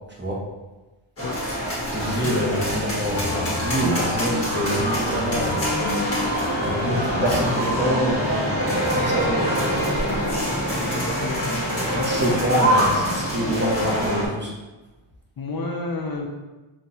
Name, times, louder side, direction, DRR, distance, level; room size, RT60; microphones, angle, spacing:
sound 1, 1.2-14.3, equal, 30° left, 1.3 m, -24 dB
voice 1, 1.9-5.6 6.6-9.7 12.0-14.5, equal, 20° right, -4 dB, 1.0 m, -26 dB
voice 2, 10.8-12.3 15.4-16.3, left 3 dB, 45° left, 0 dB, 0.5 m, -32 dB
5.1 x 2.6 x 2.7 m, 1.1 s
wide cardioid pair, 95°, 50 cm